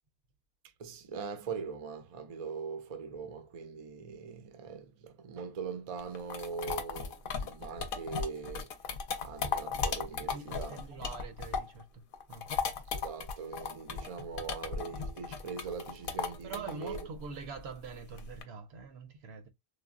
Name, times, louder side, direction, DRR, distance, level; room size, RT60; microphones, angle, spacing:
voice 1, 0.8-8.8 9.2-11.0 12.9-17.1, right 5 dB, 45° right, 0.5 m, -41 dB
sound 1, 6.0-11.8 12.1-18.4, left 6 dB, 65° left, 0.7 m, -36 dB
voice 2, 10.3-12.5 16.4-19.5, right 5 dB, 85° right, 0.9 m, -44 dB
3.3 x 2.0 x 2.4 m
omnidirectional pair, 1.1 m